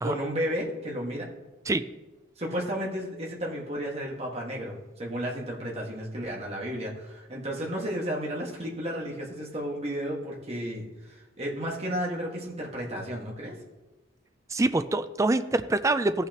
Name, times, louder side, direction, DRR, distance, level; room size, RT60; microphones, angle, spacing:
voice 1, 0.0-1.3 2.4-13.6, equal, 35° right, -3 dB, 1.7 m, -33 dB
voice 2, 14.5-16.3, right 2 dB, 15° right, 11 dB, 0.4 m, -25 dB
16.5 x 5.7 x 3.0 m, 1.1 s
head